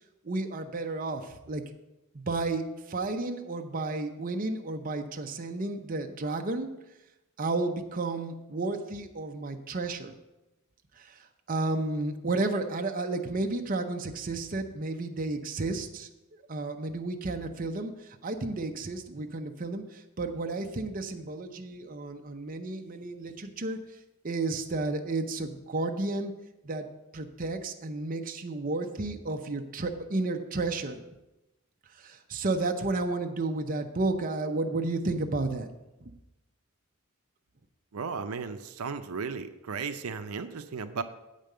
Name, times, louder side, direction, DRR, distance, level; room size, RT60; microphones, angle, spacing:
voice 1, 0.2-1.6 2.1-6.7 7.4-10.1 11.0-16.1 16.5-23.8 24.2-26.3 26.6-26.9 27.1-31.0 31.9-35.7 36.0-36.1, right 2 dB, 40° right, 4 dB, 0.7 m, -32 dB
voice 2, 37.9-41.0, right 5 dB, 85° right, 8 dB, 0.6 m, -35 dB
8.2 x 5.2 x 7.7 m, 0.99 s
head